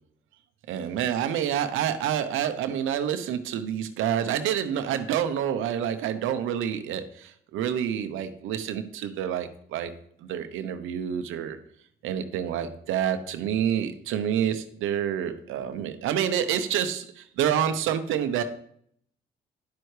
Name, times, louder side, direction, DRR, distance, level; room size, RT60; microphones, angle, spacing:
voice 1, 0.7-9.9 10.2-11.6 12.0-18.4, right 9 dB, 90° right, 9 dB, 0.8 m, -28 dB
10.5 x 7.9 x 3.3 m, 0.65 s
cardioid pair, 90°, 20 cm